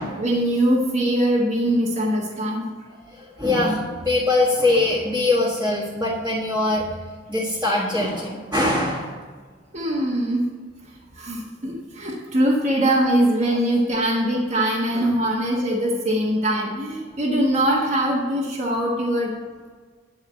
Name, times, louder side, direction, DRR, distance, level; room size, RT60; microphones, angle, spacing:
voice 1, 0.2-2.7 9.7-10.4 11.2-19.3, right 1 dB, 35° right, -4 dB, 1.2 m, -22 dB
voice 2, 3.1-6.8 7.3-9.2, left 2 dB, 10° right, -10 dB, 1.6 m, -22 dB
9.9 x 4.6 x 7.8 m, 1.5 s
head